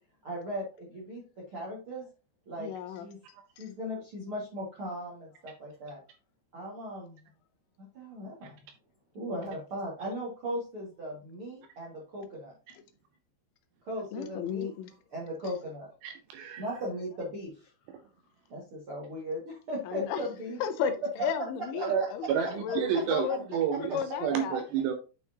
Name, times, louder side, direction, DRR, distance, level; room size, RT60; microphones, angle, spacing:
voice 1, 0.2-1.2 1.5-2.0 2.4-3.2 3.6-6.0 6.5-7.2 7.9-8.6 9.1-12.5 13.8-14.7 15.1-15.9 16.6-17.7 18.5-20.6 21.8-21.9, equal, 60° right, 1.4 m, -38 dB
voice 2, 2.6-3.1 3.6-3.7 12.7-12.8 14.1-14.9 15.4-15.5 19.8-24.7, left 8 dB, 80° left, 2.8 m, -34 dB
voice 3, 16.0-16.6 21.8-22.0 22.3-24.9, right 8 dB, 80° right, 2.6 m, -30 dB
9.3 x 5.6 x 2.8 m
omnidirectional pair, 5.5 m